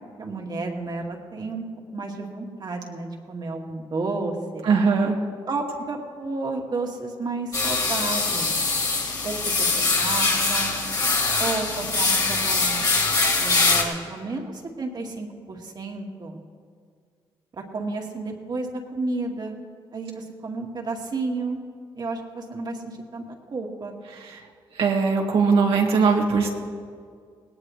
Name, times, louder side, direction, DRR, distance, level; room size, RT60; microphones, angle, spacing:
voice 1, 0.2-1.6 1.9-4.7 5.5-8.5 9.2-10.7 11.4-13.1 13.4-16.4 17.7-19.6 19.9-21.6 22.0-23.2 23.5-23.9, right 3 dB, 50° right, 1 dB, 2.1 m, -31 dB
voice 2, 4.6-5.2 24.2-24.4 24.8-26.5, right 5 dB, 80° right, 0 dB, 2.0 m, -20 dB
sound 1, 7.5-13.8, left 3 dB, 40° left, 2.9 m, -23 dB
18.5 x 18.0 x 3.3 m, 2.1 s
cardioid pair, 85°, 9 cm